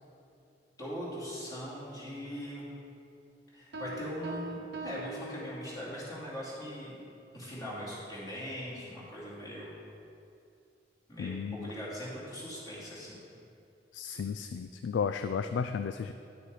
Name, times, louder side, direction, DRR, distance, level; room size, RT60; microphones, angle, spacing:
voice 1, 0.8-2.7 3.5-7.0 7.3-9.7 11.1-13.2, equal, 20° left, -8 dB, 2.6 m, -40 dB
sound 1, 3.7-6.1, right 2 dB, 75° right, 0.9 m, -42 dB
voice 2, 11.2-11.7 13.9-16.1, left 6 dB, 85° left, 10 dB, 0.3 m, -33 dB
10.5 x 6.8 x 4.8 m, 2.6 s
head